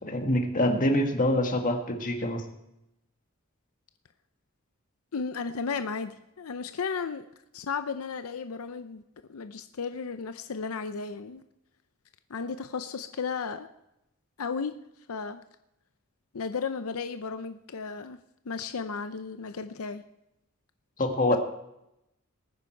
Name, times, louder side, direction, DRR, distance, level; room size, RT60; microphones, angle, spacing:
voice 1, 0.0-2.4 21.0-21.4, left 1 dB, 40° left, 4 dB, 1.6 m, -25 dB
voice 2, 5.1-7.3 7.5-9.0 9.3-11.4 12.3-13.7 14.4-14.8 15.1-15.4 16.3-18.2 18.4-20.0 21.3-21.4, left 5 dB, 85° left, 10 dB, 0.6 m, -34 dB
20.0 x 9.4 x 4.5 m, 0.87 s
head